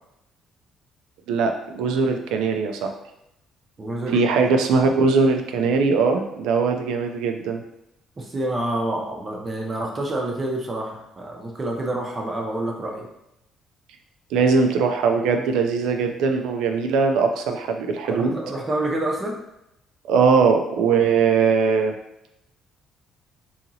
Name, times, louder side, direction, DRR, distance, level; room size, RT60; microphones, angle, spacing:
voice 1, 1.3-2.9 4.1-7.6 14.3-18.4 20.1-21.9, right 5 dB, 90° right, 5 dB, 0.4 m, -20 dB
voice 2, 3.8-4.5 8.2-13.1 18.1-19.4, right 1 dB, 25° right, -1 dB, 0.5 m, -28 dB
2.8 x 2.8 x 2.6 m, 0.85 s
cardioid pair, 125°, 0 cm